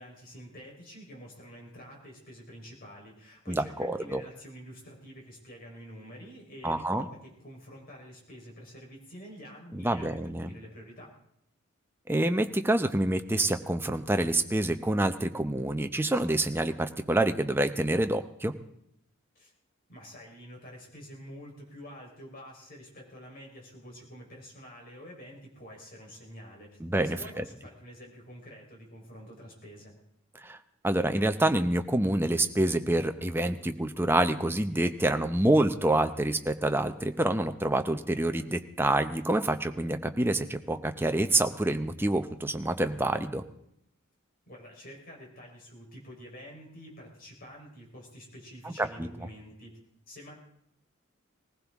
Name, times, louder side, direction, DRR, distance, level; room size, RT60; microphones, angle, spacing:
voice 1, 0.0-10.2 10.5-11.1 19.3-19.5 19.9-26.8 27.0-30.0 44.5-49.8 50.1-50.3, equal, 45° left, -1 dB, 4.2 m, -48 dB
voice 2, 3.5-4.2 6.6-7.1 9.7-10.5 12.1-18.5 26.8-27.4 30.4-30.6 30.8-43.4 48.6-49.1, right 1 dB, 10° right, 8 dB, 0.7 m, -27 dB
20.0 x 15.5 x 3.6 m, 0.77 s
head